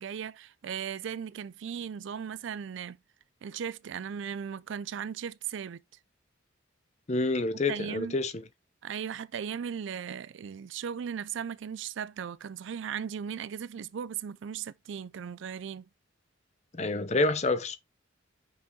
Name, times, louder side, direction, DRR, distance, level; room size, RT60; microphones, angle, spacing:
voice 1, 0.0-3.0 3.4-5.8 7.7-8.2 8.8-15.9, right 7 dB, 65° right, 0.4 m, -37 dB
voice 2, 7.1-8.3 16.7-17.8, left 3 dB, 35° left, 0.6 m, -28 dB
5.7 x 5.2 x 4.1 m
head